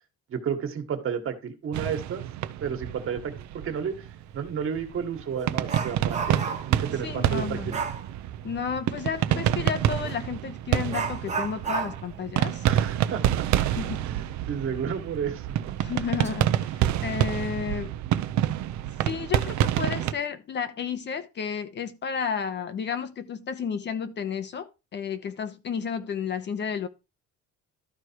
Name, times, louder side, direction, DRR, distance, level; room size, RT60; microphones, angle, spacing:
voice 1, 0.3-2.3 2.6-4.1 4.3-7.8 12.6-13.7 14.0-14.2 14.5-15.7, right 7 dB, 45° right, 1.8 m, -32 dB
sound 1, 1.7-20.1, right 12 dB, 70° right, 0.8 m, -28 dB
Dog, 4.3-4.5 4.9-6.8 7.7-8.1 10.0-10.2 10.9-14.2 14.5-14.6 15.1-15.2 15.9-16.3 16.7-16.9, right 5 dB, 25° right, 1.0 m, -33 dB
voice 2, 7.0-7.8 8.4-12.6 13.8-14.0 15.8-17.9 19.0-26.9, left 7 dB, 35° left, 0.9 m, -32 dB
12.5 x 4.8 x 4.7 m
cardioid pair, 155°, 30 cm